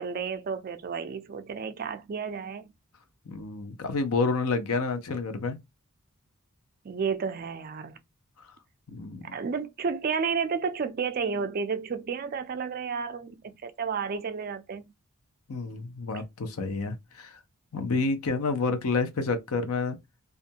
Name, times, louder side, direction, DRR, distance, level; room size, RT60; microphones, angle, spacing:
voice 1, 0.0-2.7 6.8-8.0 9.2-14.9, right 5 dB, 40° right, 0.3 m, -32 dB
voice 2, 3.3-5.6 8.4-8.5 8.9-9.3 15.5-17.4 17.7-20.0, left 3 dB, 80° left, 0.6 m, -29 dB
2.4 x 2.2 x 2.7 m
head